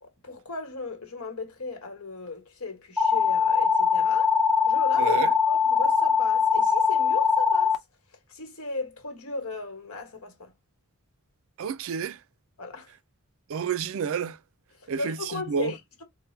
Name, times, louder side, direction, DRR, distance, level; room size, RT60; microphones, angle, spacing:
voice 1, 0.0-4.4 4.7-5.2 5.5-7.8 8.3-10.5 12.6-12.9 14.8-16.0, left 3 dB, 70° left, 1.3 m, -36 dB
sound 1, 3.0-7.8, left 6 dB, ahead, 0.5 m, -22 dB
voice 2, 5.0-5.3 11.6-12.2 13.5-14.4 14.9-15.7, right 6 dB, 60° right, 0.4 m, -30 dB
4.6 x 2.2 x 3.1 m
head